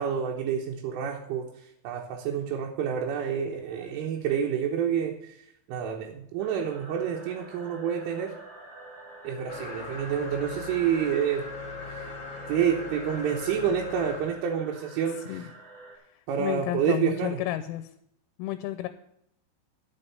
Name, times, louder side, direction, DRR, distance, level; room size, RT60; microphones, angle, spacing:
voice 1, 0.0-1.5 1.9-5.4 5.7-8.3 9.2-11.4 12.0-12.1 12.5-15.4 16.3-17.4, right 8 dB, 75° right, 0 dB, 3.5 m, -28 dB
sound 1, 6.4-16.0, right 3 dB, 55° right, 1.2 m, -48 dB
sound 2, 9.5-14.4, left 3 dB, 55° left, 1.7 m, -39 dB
voice 2, 16.4-17.9 18.4-18.9, left 13 dB, 85° left, 10 dB, 2.9 m, -31 dB
10.0 x 6.9 x 6.8 m, 0.76 s
omnidirectional pair, 6.0 m